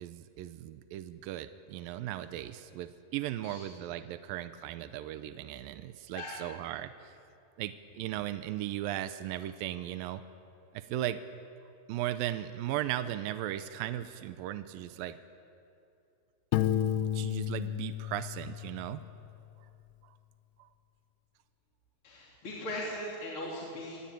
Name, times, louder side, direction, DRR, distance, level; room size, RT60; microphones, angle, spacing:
voice 1, 0.0-7.2 7.6-10.2 10.7-11.2 11.9-15.2 16.9-19.0 20.0-20.2 20.6-20.7, right 13 dB, 85° right, 11 dB, 2.0 m, -37 dB
voice 2, 6.1-6.4 22.0-24.0, left 1 dB, 35° left, -4 dB, 3.3 m, -39 dB
Piano, 16.5-19.3, left 12 dB, 80° left, 2.8 m, -32 dB
25.0 x 19.0 x 9.1 m, 2.6 s
omnidirectional pair, 5.1 m